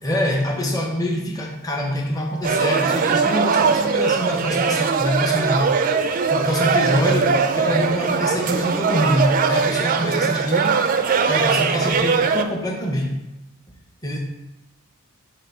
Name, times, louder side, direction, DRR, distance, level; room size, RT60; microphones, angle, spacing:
voice 1, 0.0-5.8 6.3-10.8 11.3-13.1 14.0-14.2, equal, 15° left, -1 dB, 0.8 m, -24 dB
sound 1, 2.4-12.4, right 5 dB, 40° right, 0.3 m, -20 dB
7.2 x 2.6 x 5.5 m, 0.93 s
head